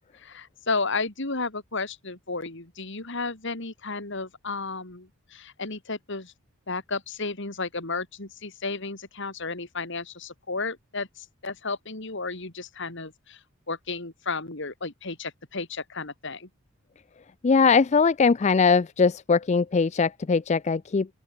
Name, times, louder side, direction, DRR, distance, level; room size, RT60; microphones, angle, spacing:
voice 1, 0.2-6.3 6.7-13.4 13.7-16.5, left 3 dB, 55° left, 2.8 m, -33 dB
voice 2, 17.4-21.1, left 5 dB, 30° left, 0.4 m, -21 dB
open air
head